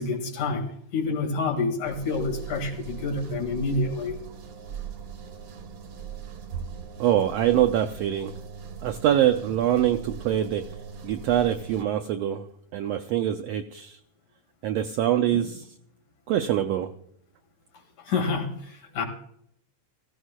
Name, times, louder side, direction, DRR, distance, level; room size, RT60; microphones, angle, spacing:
voice 1, 0.0-4.2 15.3-15.5 18.0-19.0, left 3 dB, 70° left, 3 dB, 3.3 m, -28 dB
sound 1, 1.8-11.8, right 6 dB, 60° right, 1.2 m, -40 dB
voice 2, 7.0-8.3 8.8-10.7 11.0-14.0 14.6-15.6 16.3-16.9, right 11 dB, 85° right, 7 dB, 1.4 m, -24 dB
16.0 x 15.5 x 2.2 m, 0.71 s
omnidirectional pair, 3.5 m